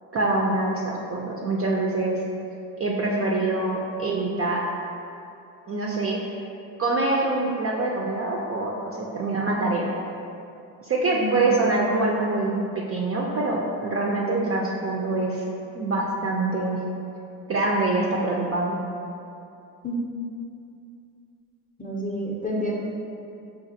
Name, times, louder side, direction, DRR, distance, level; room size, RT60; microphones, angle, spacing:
voice 1, 0.1-2.1 2.8-4.6 5.7-6.2 6.8-9.9 10.8-15.4 15.7-16.8 17.5-18.8, right 2 dB, 30° right, -2 dB, 0.4 m, -25 dB
voice 2, 11.1-11.5 19.8-20.0 21.8-22.7, equal, 15° left, -2 dB, 0.6 m, -29 dB
5.0 x 2.4 x 2.6 m, 2.7 s
supercardioid pair, 65°, 48 cm